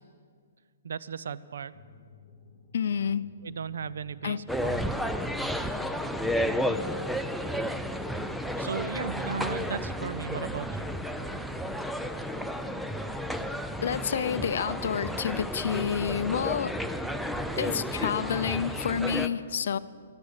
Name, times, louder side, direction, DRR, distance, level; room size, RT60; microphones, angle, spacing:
voice 1, 0.8-1.7 3.4-4.8 8.6-10.9, right 6 dB, 75° right, 0.5 m, -36 dB
sound 1, 1.7-18.6, left 4 dB, 40° left, 4.3 m, -54 dB
voice 2, 2.7-3.3 4.2-4.4 13.8-16.8 17.6-19.8, left 7 dB, 65° left, 0.5 m, -29 dB
sound 2, 4.5-19.3, equal, ahead, 0.4 m, -32 dB
14.0 x 12.0 x 7.4 m
hypercardioid pair, 160°, 0 cm